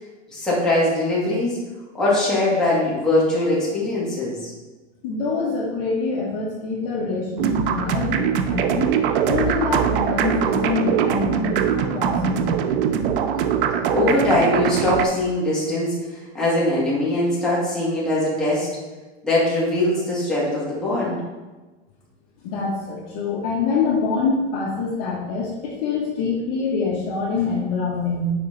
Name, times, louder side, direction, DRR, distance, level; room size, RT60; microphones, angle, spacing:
voice 1, 0.3-1.6 1.9-4.5 13.9-18.7 19.2-21.2, left 1 dB, ahead, -9 dB, 2.0 m, -21 dB
voice 2, 5.0-12.7 22.4-28.3, left 4 dB, 40° left, -3 dB, 1.4 m, -25 dB
sound 1, 7.4-15.1, right 8 dB, 50° right, 0.6 m, -22 dB
6.5 x 4.6 x 4.0 m, 1.2 s
supercardioid pair, 150°, 36 cm